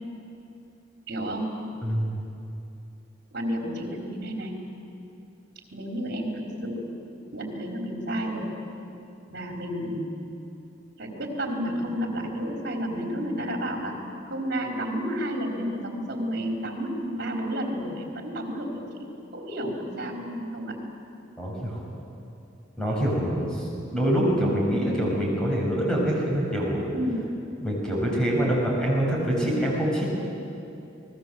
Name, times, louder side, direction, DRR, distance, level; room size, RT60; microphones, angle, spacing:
voice 1, 1.1-1.5 3.3-4.6 5.7-6.9 7.3-8.5 9.3-10.1 11.0-14.0 14.3-20.8 22.9-23.0 26.9-27.3, equal, 55° right, 0 dB, 4.3 m, -31 dB
voice 2, 1.8-2.2 21.4-21.8 22.8-26.8 27.6-30.0, equal, 5° left, -4 dB, 6.6 m, -25 dB
29.0 x 20.5 x 7.8 m, 2.8 s
head